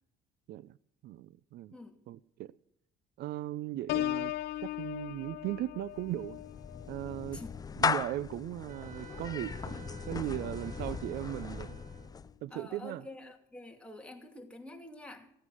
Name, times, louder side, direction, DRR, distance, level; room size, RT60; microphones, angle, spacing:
voice 1, 1.0-1.7 2.1-2.5 3.2-4.3 4.6-6.4 6.9-7.4 7.8-11.8 12.4-13.0, right 14 dB, 75° right, 0.5 m, -38 dB
voice 2, 1.7-2.0 7.3-7.6 9.9-10.0 12.5-15.3, left 2 dB, 5° left, 2.6 m, -48 dB
Piano, 3.9-9.5 10.0-10.3, left 14 dB, 75° left, 0.6 m, -39 dB
Clapping / Meow, 5.9-12.4, left 5 dB, 20° left, 0.5 m, -37 dB
Wind instrument woodwind instrument, 8.7-12.1, right 11 dB, 45° right, 0.9 m, -53 dB
16.5 x 9.5 x 7.6 m
cardioid pair, 110°, 17 cm